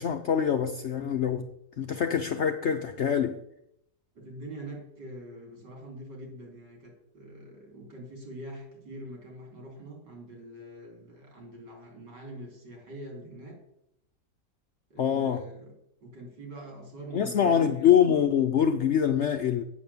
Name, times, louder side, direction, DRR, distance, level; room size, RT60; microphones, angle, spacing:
voice 1, 0.0-1.5 1.8-3.4 15.0-15.4 17.1-19.6, left 8 dB, 65° left, 0.7 m, -24 dB
voice 2, 4.1-13.6 14.9-15.7 16.0-17.9, right 1 dB, 85° right, 4.0 m, -44 dB
8.5 x 7.9 x 7.0 m
omnidirectional pair, 1.8 m